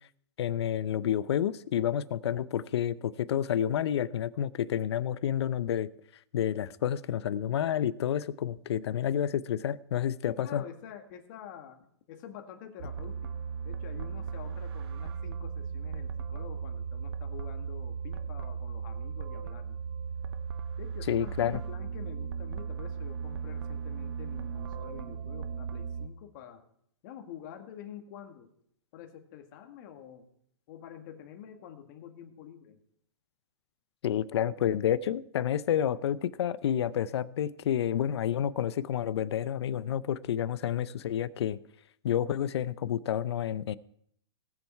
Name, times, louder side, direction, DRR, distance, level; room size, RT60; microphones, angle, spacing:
voice 1, 0.4-5.9 6.3-10.6 21.1-21.6 34.0-41.6 42.0-43.8, left 10 dB, 70° left, 18 dB, 0.6 m, -29 dB
voice 2, 10.2-11.8 12.1-13.3 13.7-19.8 20.8-26.6 27.0-28.5 28.9-30.3 30.7-32.8, left 9 dB, 45° left, 5 dB, 1.9 m, -47 dB
sound 1, 12.8-26.1, right 6 dB, 65° right, 0.9 m, -37 dB
18.0 x 7.3 x 4.6 m, 0.70 s
hypercardioid pair, 140°, 14 cm